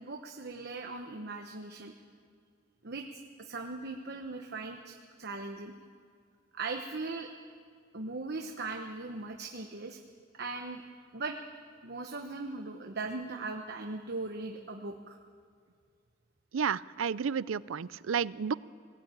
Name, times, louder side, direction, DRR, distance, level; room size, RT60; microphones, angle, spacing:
voice 1, 0.0-1.9 2.8-3.0 3.4-5.7 6.5-7.3 7.9-10.0 10.3-10.8 11.1-11.4 11.8-15.2, right 3 dB, 55° right, 3 dB, 1.1 m, -39 dB
voice 2, 16.5-18.5, right 6 dB, 85° right, 19 dB, 0.5 m, -31 dB
20.0 x 15.5 x 9.1 m, 2.2 s
head